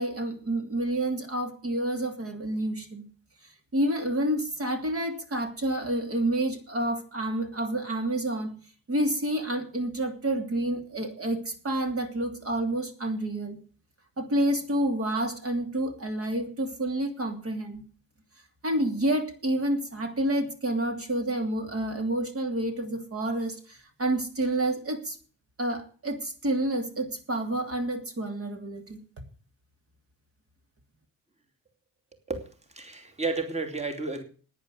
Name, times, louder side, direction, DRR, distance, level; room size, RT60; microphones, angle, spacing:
voice 1, 0.0-3.0 3.7-8.6 8.9-13.6 14.2-17.8 18.6-25.2 25.6-29.0, right 1 dB, 40° right, 5 dB, 2.9 m, -29 dB
voice 2, 32.3-34.2, right 3 dB, 20° right, 4 dB, 2.8 m, -32 dB
10.5 x 9.8 x 8.1 m, 0.40 s
cardioid pair, 75°, 35 cm